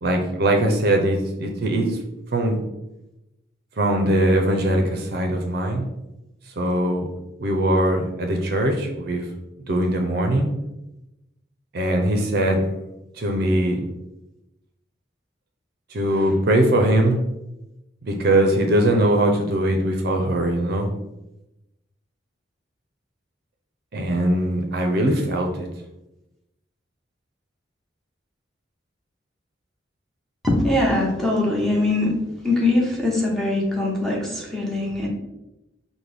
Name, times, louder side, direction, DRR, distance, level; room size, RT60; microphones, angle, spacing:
voice 1, 0.0-2.0 2.3-2.6 3.8-5.8 6.6-7.1 7.4-9.3 9.7-10.5 11.7-12.7 13.2-13.8 15.9-17.2 18.0-20.9 23.9-25.7, right 1 dB, 55° right, 3 dB, 0.5 m, -21 dB
voice 2, 30.4-32.1 32.4-35.1, left 2 dB, ahead, -4 dB, 0.9 m, -22 dB
5.9 x 2.1 x 3.4 m, 0.93 s
head